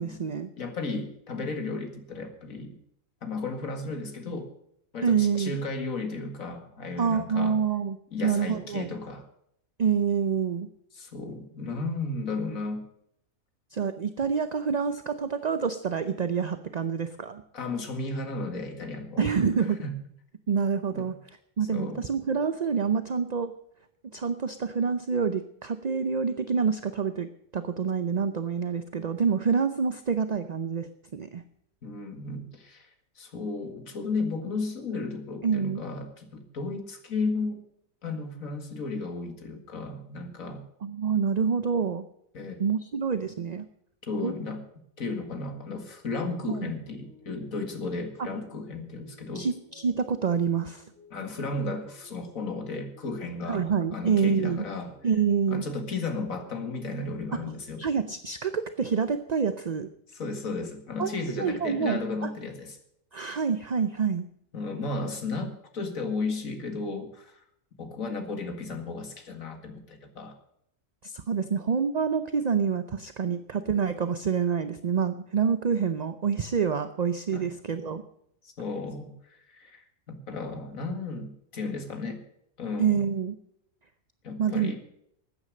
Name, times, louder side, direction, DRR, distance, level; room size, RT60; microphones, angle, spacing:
voice 1, 0.0-0.5 5.0-5.6 7.0-8.0 8.2-8.9 9.8-10.7 13.7-17.4 19.2-19.8 20.5-21.1 21.6-23.5 24.1-31.4 35.4-35.8 40.8-42.0 42.6-43.7 44.2-44.3 46.5-46.7 48.2-48.3 49.3-50.8 53.5-54.7 55.0-55.6 57.3-57.4 57.8-59.9 61.0-62.3 63.1-64.3 71.0-78.0 82.8-83.3 84.4-84.7, right 6 dB, 45° right, 10 dB, 0.6 m, -27 dB
voice 2, 0.6-2.8 3.2-4.5 4.9-7.6 8.1-9.2 10.9-12.9 17.5-19.4 19.8-19.9 20.9-21.1 21.7-22.1 31.8-32.9 33.2-37.6 38.0-40.6 42.3-42.6 44.0-44.6 45.0-49.5 51.1-54.9 55.5-57.8 60.1-62.8 64.5-67.4 67.8-70.4 77.3-77.5 78.4-82.2 82.6-83.1 84.2-84.8, left 3 dB, 70° left, 6 dB, 2.4 m, -34 dB
sound 1, 47.0-58.1, left 2 dB, 55° left, 7.0 m, -56 dB
13.5 x 9.8 x 6.5 m, 0.73 s
omnidirectional pair, 1.5 m